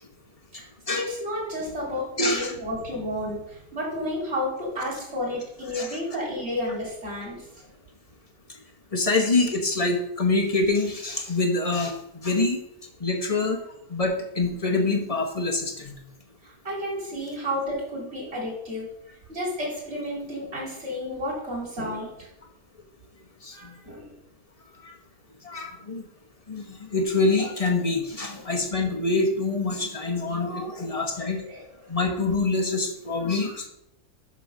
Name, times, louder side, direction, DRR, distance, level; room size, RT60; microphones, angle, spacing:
voice 1, 0.5-7.5 16.4-18.9 19.3-22.3 23.5-24.1 28.4-28.5 31.0-31.9, left 1 dB, 40° right, -4 dB, 3.3 m, -32 dB
voice 2, 2.2-2.5 5.7-5.9 8.9-12.6 13.0-13.6 13.9-16.0 23.4-23.5 24.8-24.9 25.4-26.0 26.5-31.4 31.9-33.7, left 3 dB, 30° left, 2 dB, 0.9 m, -25 dB
6.1 x 6.0 x 6.1 m, 0.79 s
omnidirectional pair, 1.6 m